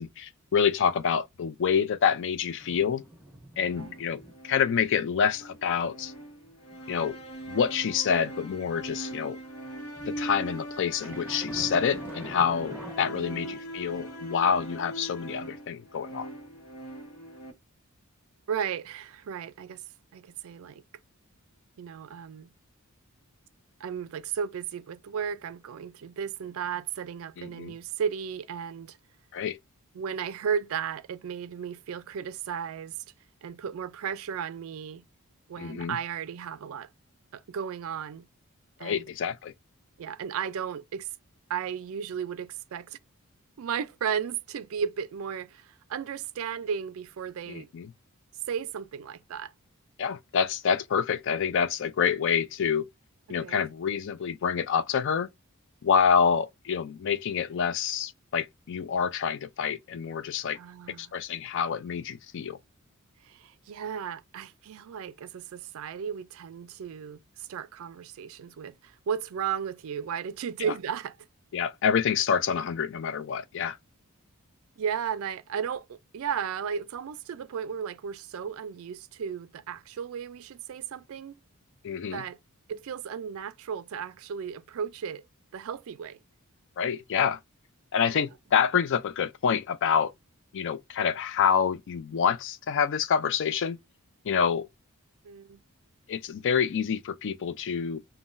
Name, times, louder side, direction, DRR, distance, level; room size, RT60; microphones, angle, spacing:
voice 1, 0.0-3.0 3.6-6.1 6.9-7.2 7.5-9.4 10.1-16.3 27.4-27.7 29.3-29.6 35.6-36.0 38.8-39.5 47.5-47.9 50.0-52.9 53.3-55.3 55.8-60.6 61.0-62.6 71.5-73.8 81.8-82.2 86.8-87.4 87.9-90.1 90.5-93.8 94.2-94.7 96.1-98.0, left 7 dB, 55° left, 0.4 m, -27 dB
sound 1, 2.5-4.4 4.8-5.0 5.4-9.0 9.9-13.0, right 1 dB, 10° right, 1.1 m, -46 dB
sound 2, 3.6-17.5, right 1 dB, 80° left, 0.9 m, -40 dB
voice 2, 13.1-13.6 18.5-19.8 20.1-20.8 21.8-22.5 23.8-29.0 29.9-33.0 33.4-35.0 35.5-36.9 37.3-38.2 38.8-39.1 40.0-41.1 41.5-43.0 43.6-47.7 48.5-49.5 53.4-53.6 60.5-61.1 63.2-71.1 74.8-81.4 82.1-82.4 82.7-85.2 85.5-86.2 88.1-88.2 95.2-95.6, right 7 dB, 65° right, 0.3 m, -35 dB
3.7 x 2.2 x 2.5 m
head